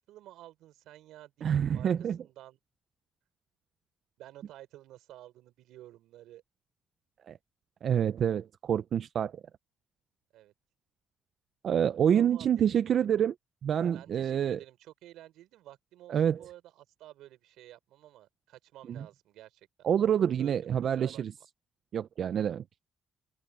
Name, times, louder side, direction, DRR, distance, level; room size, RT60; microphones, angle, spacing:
voice 1, 0.0-2.6 4.2-6.4 10.3-10.5 12.1-12.9 13.9-19.9 20.4-21.2 22.4-22.5, right 14 dB, 90° right, 5.9 m, -52 dB
voice 2, 1.4-2.2 7.3-7.4 7.8-9.3 11.6-13.3 13.6-14.6 16.1-16.5 18.9-19.1 19.8-21.3 21.9-22.6, right 9 dB, 60° right, 0.5 m, -27 dB
cardioid pair, 90°, 0 cm